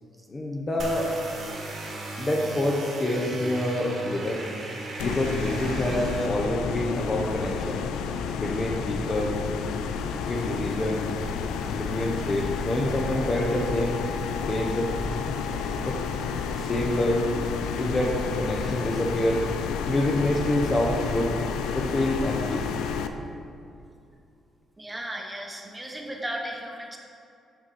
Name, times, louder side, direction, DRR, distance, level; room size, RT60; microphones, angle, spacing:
voice 1, 0.3-1.1 2.2-4.4 5.0-7.9 8.4-9.4 10.1-11.1 11.7-14.0 14.5-14.9 15.8-16.0 16.6-17.3 17.8-19.5 19.9-21.4 21.7-22.7, left 1 dB, 25° left, -2 dB, 0.7 m, -27 dB
sound 1, 0.8-6.3, right 2 dB, 60° right, 1.2 m, -37 dB
sound 2, 5.0-23.1, left 6 dB, 90° left, 0.3 m, -30 dB
voice 2, 24.8-27.0, right 1 dB, 10° right, 1 dB, 0.9 m, -35 dB
6.0 x 5.3 x 4.2 m, 2.5 s
cardioid pair, 90°, 0 cm